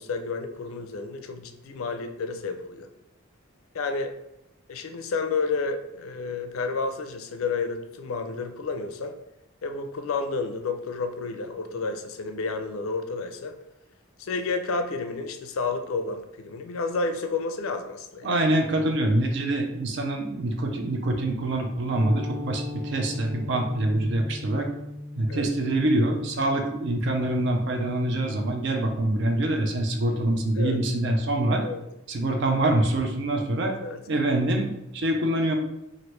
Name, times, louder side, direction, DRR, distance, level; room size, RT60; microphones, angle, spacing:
voice 1, 0.0-2.9 3.7-4.1 4.7-9.2 9.6-13.6 14.2-18.3 25.3-25.5 30.6-30.8 31.6-31.8 33.7-34.0, left 4 dB, 85° left, 7 dB, 0.4 m, -30 dB
voice 2, 18.2-24.7 25.2-31.6 32.1-33.7 34.1-35.5, right 1 dB, 60° right, 3 dB, 0.4 m, -25 dB
sound 1, 21.9-30.2, left 2 dB, 75° right, 1.5 m, -40 dB
3.0 x 2.5 x 3.1 m, 0.87 s
head